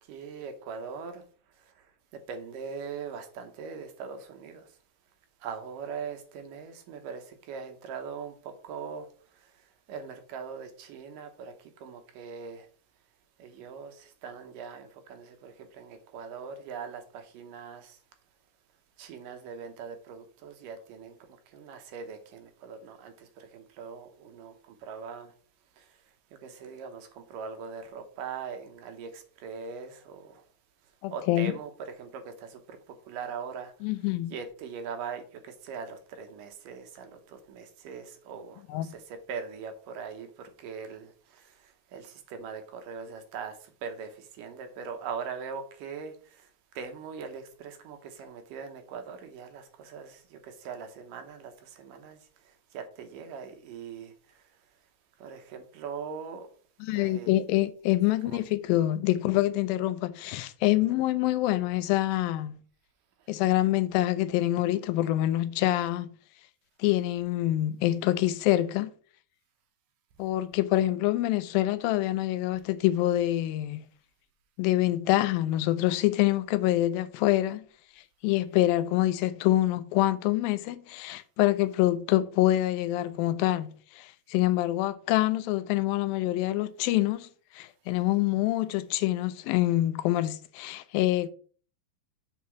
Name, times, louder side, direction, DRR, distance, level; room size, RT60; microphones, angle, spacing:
voice 1, 0.0-4.8 5.4-12.7 13.4-18.0 19.0-25.4 25.7-30.5 30.8-54.9 55.2-56.5 56.9-57.4 58.2-58.4 63.2-63.3, right 6 dB, 75° right, 2.4 m, -41 dB
voice 2, 31.0-31.5 33.8-34.3 38.7-38.9 56.9-62.6 63.3-66.1 66.8-68.9 70.2-73.8 74.6-77.7 78.2-87.3 87.5-91.3, left 15 dB, 85° left, 2.3 m, -26 dB
6.6 x 4.1 x 5.9 m
omnidirectional pair, 4.1 m